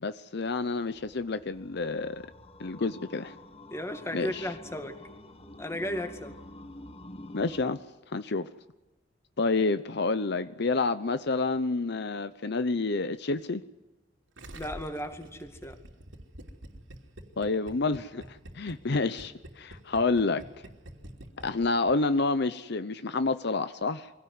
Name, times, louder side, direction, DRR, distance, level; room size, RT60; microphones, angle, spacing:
voice 1, 0.0-2.3 2.6-3.4 4.1-4.5 7.3-7.8 8.1-8.5 9.4-13.6 17.4-20.6 21.4-24.1, left 3 dB, 60° left, 12 dB, 0.8 m, -29 dB
sound 1, 0.8-7.7, left 1 dB, 30° left, 1.4 m, -48 dB
voice 2, 3.7-5.0 5.6-6.4 14.5-15.8, equal, 15° left, 7 dB, 2.2 m, -35 dB
Gurgling, 14.4-22.2, right 1 dB, 80° right, 3.0 m, -46 dB
24.0 x 17.0 x 9.6 m, 1.1 s
head